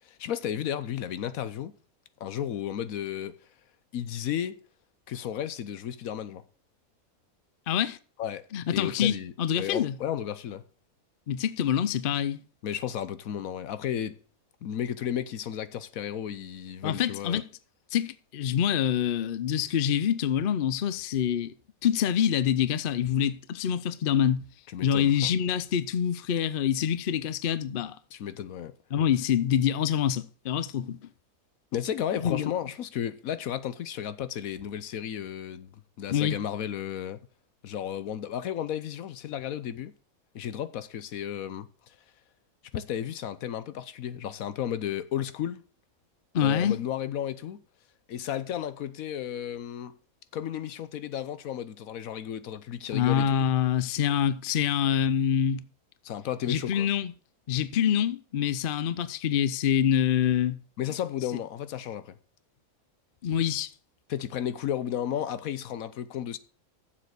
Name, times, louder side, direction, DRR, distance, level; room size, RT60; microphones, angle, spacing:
voice 1, 0.0-1.7 2.2-3.4 3.9-4.6 5.1-6.4 8.2-8.5 8.7-10.6 12.6-14.2 14.6-17.4 24.7-25.1 28.1-28.7 31.7-35.7 36.0-37.2 37.6-39.9 40.3-41.7 42.7-45.6 46.4-47.6 48.1-49.9 50.3-53.5 56.0-56.9 60.8-62.1 64.1-66.4, left 10 dB, 75° left, 1.2 m, -33 dB
voice 2, 7.7-8.0 8.5-9.9 11.3-12.4 16.8-17.5 17.9-21.5 21.8-24.4 24.8-28.0 28.9-31.1 32.2-32.5 36.1-36.4 46.3-46.8 52.9-55.6 56.5-57.1 57.5-60.6 63.2-63.7, left 9 dB, 50° left, 0.7 m, -26 dB
7.5 x 6.6 x 8.1 m
omnidirectional pair, 1.5 m